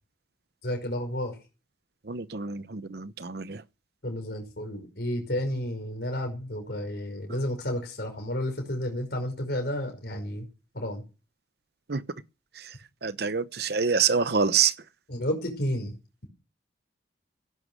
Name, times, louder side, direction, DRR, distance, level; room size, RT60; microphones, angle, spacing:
voice 1, 0.6-1.4 4.0-10.5 10.7-11.0 15.1-15.9, left 1 dB, 60° left, 5.5 m, -31 dB
voice 2, 2.1-3.6 11.9-12.0 13.0-14.7, right 6 dB, 60° right, 0.9 m, -26 dB
16.5 x 10.5 x 6.3 m
head